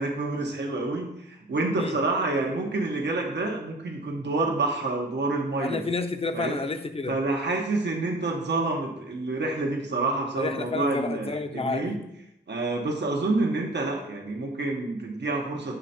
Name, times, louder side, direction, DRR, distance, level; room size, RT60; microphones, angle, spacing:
voice 1, 0.0-5.8 6.3-6.6 7.1-12.0 12.5-15.8, right 2 dB, 85° right, 1 dB, 1.1 m, -28 dB
voice 2, 5.6-7.2 10.4-11.9, left 3 dB, 35° left, 7 dB, 0.6 m, -30 dB
8.0 x 3.3 x 4.2 m, 0.80 s
wide cardioid pair, 75°, 18 cm